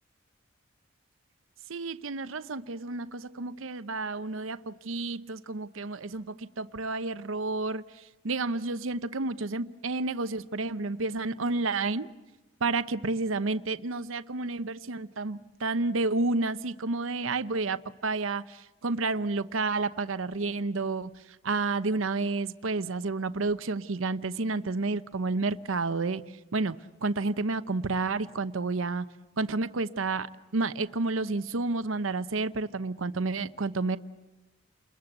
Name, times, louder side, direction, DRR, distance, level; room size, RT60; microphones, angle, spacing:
voice 1, 1.7-12.1 12.6-26.2 26.5-26.8 27.0-29.1 29.4-34.0, right 3 dB, 80° right, 13 dB, 0.8 m, -30 dB
29.5 x 21.5 x 8.0 m, 1.1 s
head